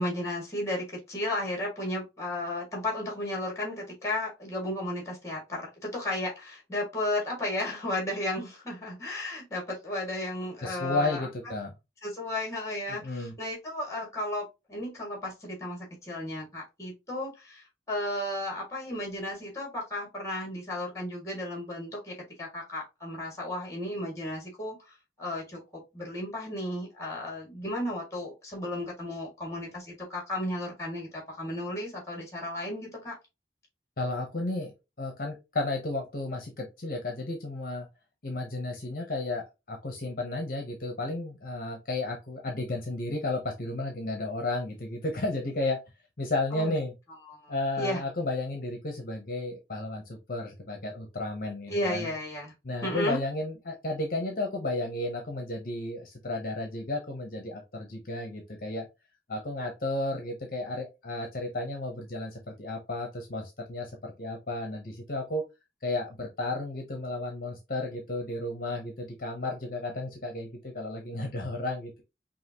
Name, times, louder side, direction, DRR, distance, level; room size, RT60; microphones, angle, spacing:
voice 1, 0.0-11.3 12.0-24.8 25.2-25.6 25.9-33.1 46.5-46.7 47.3-48.0 51.7-52.5 52.8-53.2, left 1 dB, 15° left, 2.0 m, -34 dB
voice 2, 10.6-11.7 12.9-13.3 34.0-34.7 35.0-37.9 38.2-45.8 46.2-46.9 47.5-52.1 52.6-58.9 59.3-65.4 65.8-72.0, left 2 dB, 50° left, 0.9 m, -33 dB
5.6 x 2.5 x 2.9 m
head